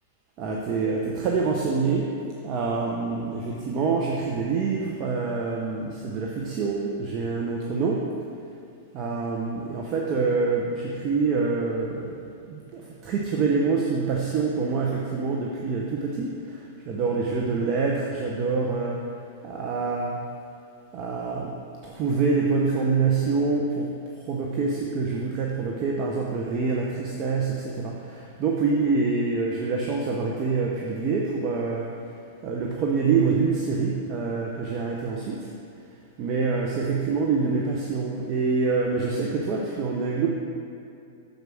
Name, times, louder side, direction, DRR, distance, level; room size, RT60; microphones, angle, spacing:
voice 1, 0.4-8.1 8.9-12.2 12.5-19.1 19.4-20.2 20.9-23.9 24.2-31.9 32.4-35.5 36.2-40.3, right 4 dB, 40° right, -2 dB, 0.8 m, -26 dB
6.6 x 4.7 x 6.2 m, 2.5 s
hypercardioid pair, 115°, 0 cm